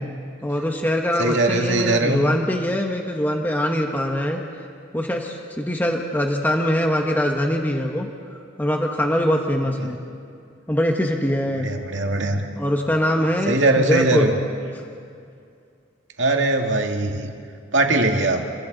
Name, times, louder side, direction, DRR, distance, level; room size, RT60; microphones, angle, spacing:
voice 1, 0.4-4.4 4.9-8.1 8.6-10.0 10.7-11.7 12.6-14.2, equal, 10° left, 1 dB, 1.3 m, -22 dB
voice 2, 1.2-2.3 9.8-9.9 11.6-12.5 13.5-14.3 16.2-17.3 17.7-18.4, right 2 dB, 80° right, 3 dB, 2.1 m, -20 dB
30.0 x 22.5 x 4.1 m, 2.4 s
head